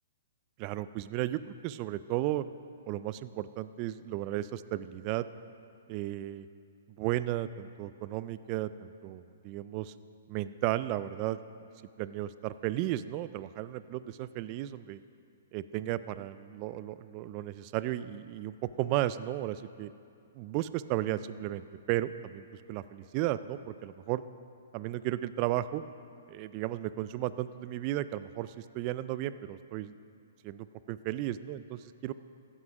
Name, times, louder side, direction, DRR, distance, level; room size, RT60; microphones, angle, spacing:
voice 1, 0.6-2.4 2.9-5.3 5.9-6.5 7.0-9.9 10.3-11.4 12.0-15.0 15.5-19.9 20.3-24.2 24.7-25.8 26.3-29.9 30.4-32.1, right 14 dB, 35° right, 14 dB, 0.3 m, -34 dB
15.5 x 6.1 x 5.3 m, 2.5 s
hypercardioid pair, 145°, 0 cm